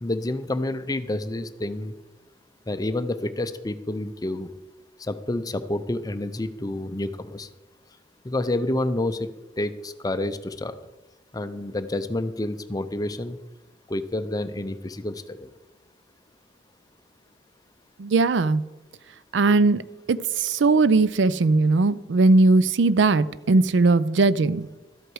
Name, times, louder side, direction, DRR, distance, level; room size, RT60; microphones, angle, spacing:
voice 1, 0.0-1.9 2.7-4.5 5.0-7.5 8.2-9.3 9.6-10.8 11.3-13.4 13.9-15.5, left 1 dB, 20° left, 11 dB, 0.6 m, -29 dB
voice 2, 18.0-18.6 19.3-19.8 20.1-24.7, right 3 dB, 70° right, 17 dB, 0.5 m, -19 dB
12.5 x 8.0 x 4.7 m, 1.0 s
head